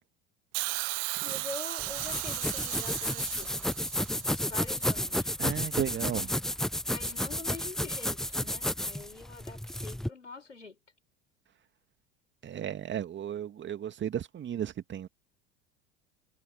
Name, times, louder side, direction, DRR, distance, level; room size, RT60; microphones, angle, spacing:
Hiss, 0.5-4.7 5.7-5.8, right 31 dB, 45° right, 0.7 m, -36 dB
voice 1, 1.2-3.5 4.4-5.3 6.9-10.8, left 3 dB, 90° left, 4.5 m, -44 dB
sound 1, 1.8-10.1, left 1 dB, ahead, 0.5 m, -32 dB
voice 2, 5.4-6.3 12.4-15.1, right 10 dB, 30° right, 2.2 m, -34 dB
figure-of-eight pair, 75°, 35 cm